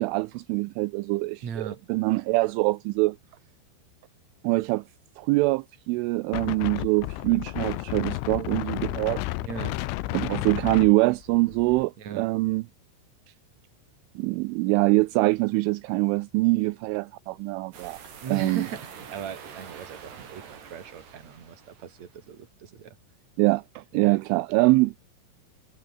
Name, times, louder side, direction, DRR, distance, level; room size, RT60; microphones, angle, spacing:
voice 1, 0.0-3.2 4.4-4.8 5.2-9.2 10.1-12.7 14.2-18.0 18.3-18.7 23.4-24.9, right 22 dB, 80° right, 3.0 m, -24 dB
voice 2, 1.4-1.8 9.4-9.7 12.0-12.3 18.2-23.0 23.9-24.2, right 7 dB, 40° right, 3.6 m, -38 dB
Wind, 6.3-11.8, left 19 dB, 85° left, 3.4 m, -32 dB
sound 1, 17.7-22.2, right 7 dB, 60° right, 6.1 m, -45 dB
omnidirectional pair, 5.7 m